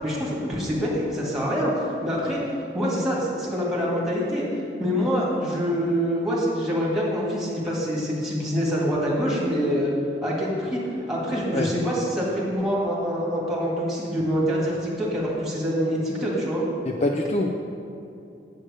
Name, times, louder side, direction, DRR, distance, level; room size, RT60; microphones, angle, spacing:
voice 1, 0.0-2.4 2.7-4.4 4.8-9.9 10.2-10.8 11.1-16.6, equal, ahead, -6 dB, 1.9 m, -25 dB
voice 2, 16.9-17.5, left 2 dB, 35° left, 2 dB, 0.4 m, -24 dB
7.7 x 7.5 x 5.0 m, 2.7 s
head